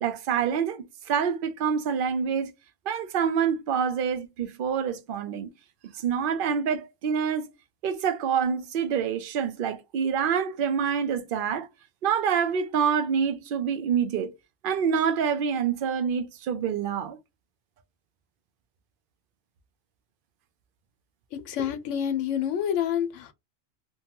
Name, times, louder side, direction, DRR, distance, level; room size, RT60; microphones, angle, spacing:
voice 1, 0.0-2.5 2.9-5.5 6.0-7.5 7.8-11.7 12.0-14.3 14.6-17.2, right 7 dB, 60° right, 0.6 m, -26 dB
voice 2, 21.3-23.3, left 9 dB, 75° left, 0.9 m, -28 dB
2.7 x 2.2 x 2.8 m
omnidirectional pair, 1.3 m